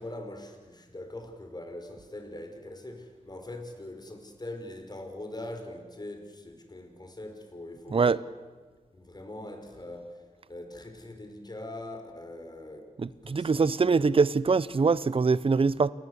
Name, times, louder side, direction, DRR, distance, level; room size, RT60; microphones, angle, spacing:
voice 1, 0.0-8.2 8.9-12.9 13.2-14.2, left 1 dB, 30° left, 6 dB, 5.3 m, -42 dB
voice 2, 13.0-15.9, right 4 dB, 45° right, 18 dB, 0.7 m, -23 dB
29.0 x 19.5 x 8.2 m, 1.5 s
cardioid pair, 55°, 13 cm